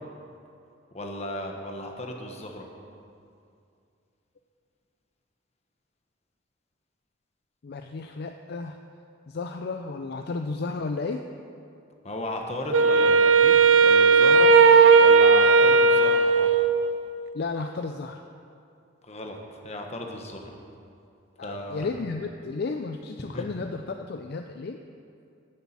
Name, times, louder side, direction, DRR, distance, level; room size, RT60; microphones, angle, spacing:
voice 1, 0.9-2.6 12.0-14.5 15.0-16.5 19.0-20.5 21.4-21.9 23.3-23.4, left 1 dB, 35° left, 2 dB, 1.2 m, -35 dB
voice 2, 7.6-8.8 9.3-11.2 17.3-18.2 21.4-24.8, left 3 dB, 55° left, 6 dB, 0.4 m, -33 dB
Wind instrument woodwind instrument, 12.7-17.1, right 4 dB, 80° right, 0.4 m, -16 dB
9.9 x 7.1 x 7.5 m, 2.5 s
head